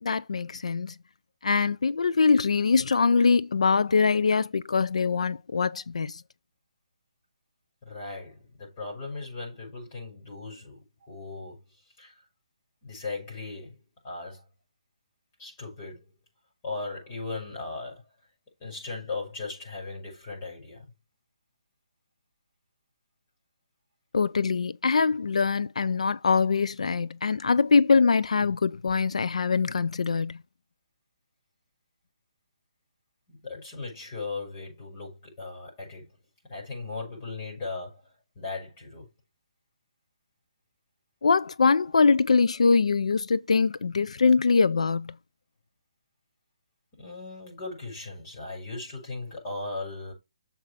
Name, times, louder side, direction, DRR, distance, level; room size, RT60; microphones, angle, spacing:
voice 1, 0.0-0.9 1.4-6.2 24.1-30.4 41.2-45.1, left 4 dB, 75° left, 0.6 m, -23 dB
voice 2, 7.8-11.6 12.0-12.1 12.8-13.8 14.0-14.4 15.4-16.1 16.6-18.0 18.6-20.9 33.3-36.2 36.5-38.0 38.3-39.1 46.9-50.1, left 3 dB, 25° left, 6.8 m, -38 dB
7.2 x 5.6 x 5.1 m
hypercardioid pair, 160°, 3 cm